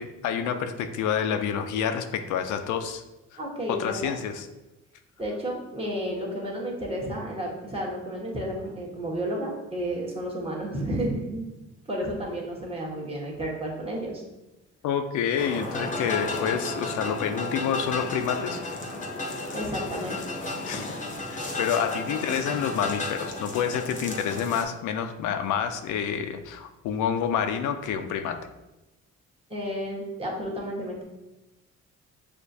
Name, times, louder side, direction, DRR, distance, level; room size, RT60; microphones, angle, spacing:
voice 1, 0.0-3.0 3.7-4.5 14.8-18.6 19.5-19.6 20.7-21.0 21.3-28.4, left 8 dB, 80° left, 8 dB, 0.5 m, -28 dB
voice 2, 3.4-4.1 5.2-11.4 11.9-14.2 19.5-20.2 29.5-31.0, right 1 dB, 20° right, -3 dB, 1.2 m, -32 dB
sound 1, 15.4-24.6, left 2 dB, 25° left, 0.7 m, -33 dB
6.3 x 2.5 x 2.7 m, 1.0 s
cardioid pair, 90°, 30 cm